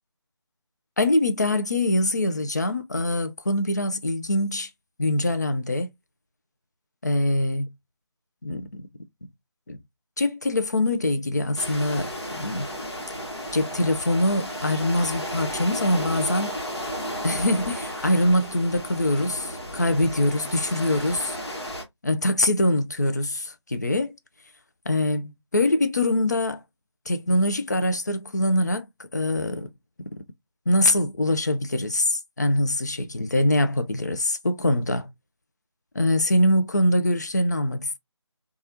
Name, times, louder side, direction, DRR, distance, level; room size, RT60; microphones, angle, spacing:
voice 1, 1.0-4.7 5.0-5.9 7.0-7.7 8.4-8.9 9.7-9.8 10.2-12.7 13.5-16.6 17.2-21.4 22.0-24.1 24.9-26.6 27.1-28.9 29.1-29.7 30.0-30.2 30.7-35.1 35.9-38.0, left 1 dB, 35° left, 0.4 m, -23 dB
sound 1, 11.6-21.8, equal, 60° left, 1.2 m, -33 dB
3.1 x 2.3 x 2.6 m
figure-of-eight pair, 160°, 15 cm